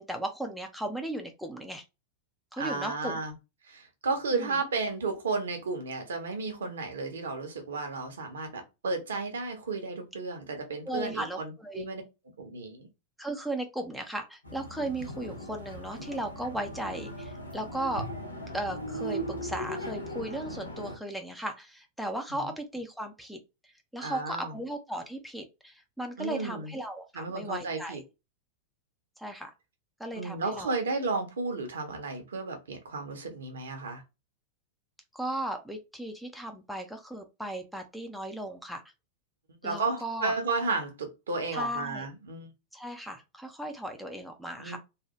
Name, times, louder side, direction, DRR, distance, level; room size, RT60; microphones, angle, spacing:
voice 1, 0.0-1.8 2.5-3.2 4.3-4.6 10.9-11.9 13.2-18.0 18.5-23.4 23.9-28.0 29.2-29.5 30.0-30.8 35.1-38.8 39.6-40.4 41.5-42.1 42.7-44.8, right 1 dB, ahead, 0.6 m, -36 dB
voice 2, 2.6-3.3 3.6-12.0 12.4-12.9 22.3-22.5 24.0-24.6 26.2-26.7 27.1-28.0 30.1-34.0 39.6-42.5 44.6-44.8, right 3 dB, 65° right, 0.9 m, -33 dB
sound 1, 14.4-21.0, equal, 80° left, 0.8 m, -38 dB
3.2 x 2.2 x 2.9 m
figure-of-eight pair, 90°, 0 cm